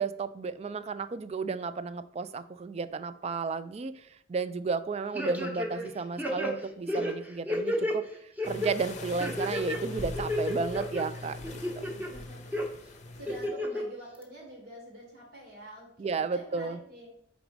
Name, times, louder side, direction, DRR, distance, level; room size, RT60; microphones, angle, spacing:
voice 1, 0.0-11.5 11.8-11.9 16.0-16.8, right 4 dB, 35° right, 13 dB, 0.3 m, -33 dB
sound 1, 5.1-5.9 6.2-8.0 8.4-8.7 9.2-9.8 10.1-11.0 11.4-12.1 12.5-12.6 13.3-13.8 14.2-14.3, left 1 dB, 10° right, 0.9 m, -31 dB
sound 2, 8.4-13.5, left 2 dB, 40° left, 0.7 m, -41 dB
voice 2, 11.7-12.6 13.2-17.1, equal, 80° right, -3 dB, 2.1 m, -47 dB
5.0 x 4.1 x 4.6 m, 0.69 s
head